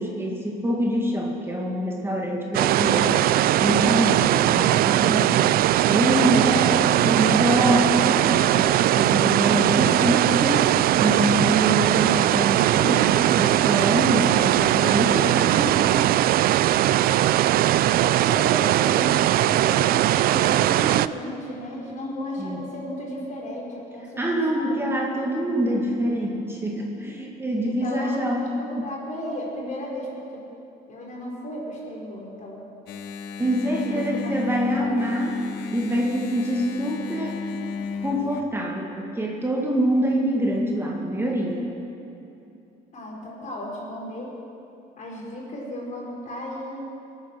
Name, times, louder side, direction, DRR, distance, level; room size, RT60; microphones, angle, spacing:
voice 1, 0.0-3.2 3.6-5.4 5.8-10.6 11.0-16.0 22.4-22.6 24.2-28.5 28.8-28.9 33.4-35.4 35.7-37.4 38.0-41.7, equal, 15° right, -1 dB, 1.8 m, -25 dB
sound 1, 2.5-21.1, right 13 dB, 65° right, 0.4 m, -20 dB
voice 2, 18.0-24.8 27.6-30.4 30.9-32.6 33.8-34.9 42.9-44.3 45.0-46.9, equal, 45° left, -3 dB, 4.5 m, -34 dB
Engine, 32.9-38.4, left 6 dB, 80° left, 0.9 m, -34 dB
20.5 x 9.3 x 6.1 m, 2.8 s
cardioid pair, 110°, 17 cm